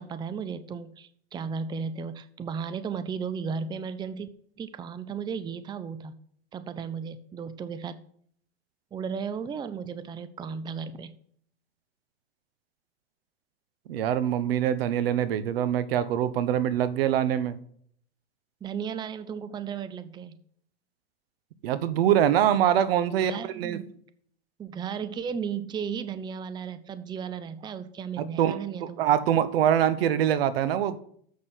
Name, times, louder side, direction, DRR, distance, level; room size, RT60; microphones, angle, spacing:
voice 1, 0.0-4.3 4.6-6.1 6.5-8.0 8.9-11.2 18.6-20.4 23.2-23.9 24.6-29.2, right 6 dB, 15° right, 13 dB, 0.5 m, -35 dB
voice 2, 13.9-17.6 21.6-23.8 28.2-31.0, right 10 dB, 70° right, 14 dB, 0.9 m, -24 dB
7.4 x 6.5 x 7.6 m, 0.64 s
hypercardioid pair, 115°, 30 cm